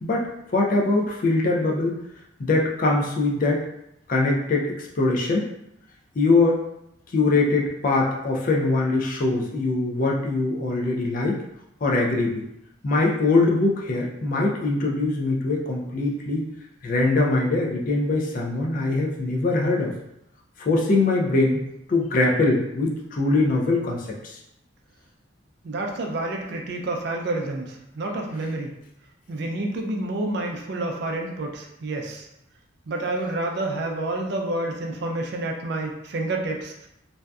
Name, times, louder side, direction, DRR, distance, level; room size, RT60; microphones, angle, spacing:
voice 1, 0.0-2.0 2.4-3.7 4.1-5.5 6.2-6.6 7.1-11.4 11.8-12.4 12.8-16.4 16.8-19.9 20.6-21.6 21.9-24.4, left 2 dB, 45° left, -1 dB, 0.4 m, -22 dB
voice 2, 25.6-28.8 29.3-32.3 32.9-36.9, right 2 dB, 60° right, 1 dB, 0.4 m, -29 dB
2.6 x 2.2 x 2.2 m, 0.82 s
head